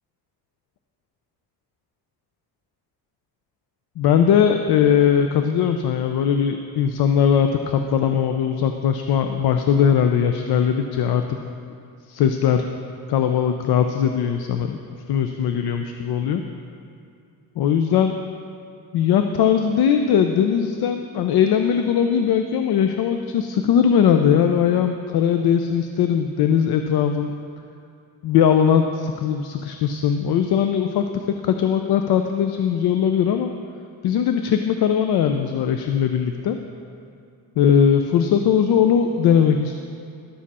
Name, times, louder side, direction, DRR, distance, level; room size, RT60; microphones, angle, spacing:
voice 1, 4.0-11.4 12.1-12.6 13.1-14.8 15.1-16.4 17.6-18.1 18.9-27.3 28.2-33.5 34.0-36.6 37.6-39.8, left 8 dB, 70° left, 6 dB, 0.5 m, -20 dB
11.5 x 7.4 x 4.2 m, 2.5 s
cardioid pair, 155°, 39 cm